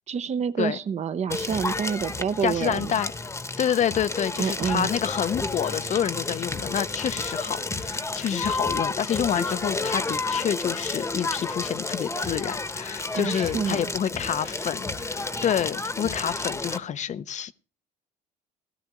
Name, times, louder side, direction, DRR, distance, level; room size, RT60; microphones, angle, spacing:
voice 1, 0.1-2.9 4.4-4.9 13.1-13.9, right 7 dB, 40° right, 0.8 m, -28 dB
Crackle, 1.3-16.8, left 3 dB, 15° left, 1.0 m, -31 dB
voice 2, 2.4-3.1 3.6-17.5, left 9 dB, 45° left, 0.6 m, -28 dB
16.5 x 13.0 x 3.0 m
cardioid pair, 110°, 17 cm